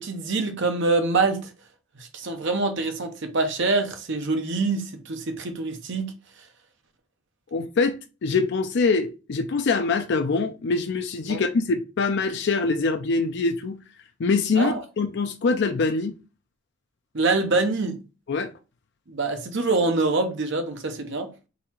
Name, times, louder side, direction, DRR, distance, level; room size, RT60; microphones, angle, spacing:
voice 1, 0.0-1.5 2.0-6.1 11.3-11.4 14.5-14.8 17.1-18.0 19.1-21.3, right 3 dB, 60° right, 0.8 m, -25 dB
voice 2, 7.5-13.8 14.2-16.2 18.3-18.5, left 4 dB, 55° left, 0.4 m, -24 dB
4.0 x 2.8 x 4.3 m
head